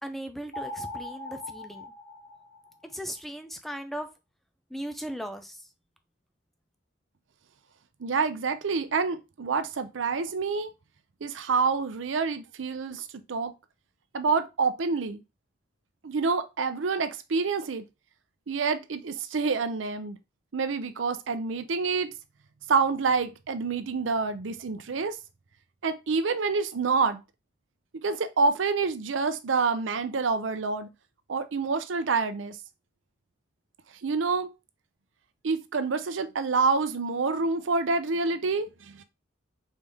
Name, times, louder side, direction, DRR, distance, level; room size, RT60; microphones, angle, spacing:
voice 1, 0.0-1.9 2.8-4.1 4.7-5.7, equal, ahead, 0.5 m, -37 dB
sound 1, 0.5-3.0, left 1 dB, 70° left, 1.6 m, -40 dB
voice 2, 8.0-10.7 11.2-13.5 14.1-15.2 16.0-17.9 18.5-20.2 20.5-22.1 22.7-25.2 25.8-27.2 28.0-30.9 31.3-32.6 34.0-34.5 35.4-39.0, right 4 dB, 85° right, 0.6 m, -27 dB
4.1 x 3.4 x 3.4 m
head